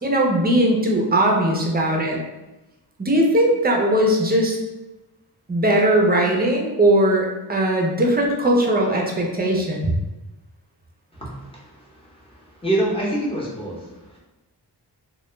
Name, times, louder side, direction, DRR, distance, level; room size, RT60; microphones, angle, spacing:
voice 1, 0.0-2.2 3.0-4.6 5.5-9.9, right 1 dB, 25° right, 0 dB, 0.5 m, -19 dB
voice 2, 11.1-14.2, right 1 dB, 15° left, -5 dB, 0.7 m, -27 dB
2.3 x 2.1 x 3.0 m, 1.0 s
wide cardioid pair, 80°, 42 cm